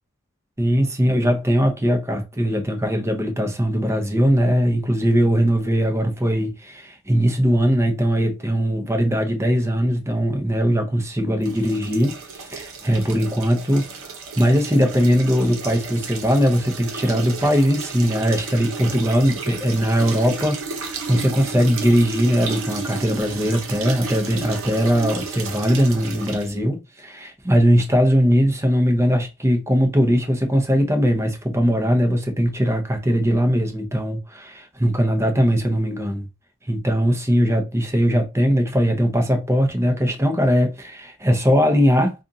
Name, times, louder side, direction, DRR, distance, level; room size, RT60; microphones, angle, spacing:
voice 1, 0.6-36.2 36.7-42.1, equal, 10° right, 0.8 m, -20 dB
sound 1, 11.4-26.5, right 4 dB, 65° right, 0.9 m, -33 dB
5.1 x 2.5 x 2.7 m
head